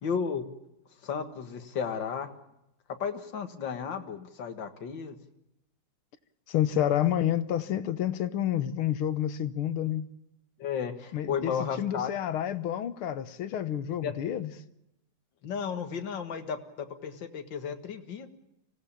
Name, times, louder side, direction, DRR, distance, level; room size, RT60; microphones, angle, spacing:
voice 1, 0.0-0.5 1.0-2.3 3.0-5.2 10.6-12.1 14.0-14.1 15.4-18.4, left 6 dB, 60° left, 2.3 m, -33 dB
voice 2, 6.5-10.1 11.1-14.5, left 11 dB, 85° left, 1.9 m, -29 dB
24.5 x 17.0 x 8.8 m
omnidirectional pair, 2.3 m